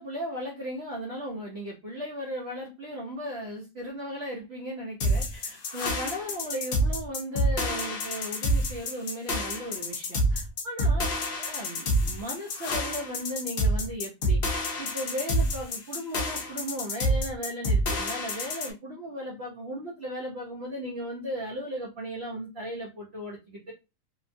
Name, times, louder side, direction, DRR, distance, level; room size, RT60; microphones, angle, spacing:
voice 1, 0.0-11.1 11.4-23.7, equal, 50° right, -2 dB, 0.8 m, -36 dB
sound 1, 5.0-18.7, equal, 60° left, 0.6 m, -28 dB
2.9 x 2.2 x 2.6 m, 0.26 s
omnidirectional pair, 1.7 m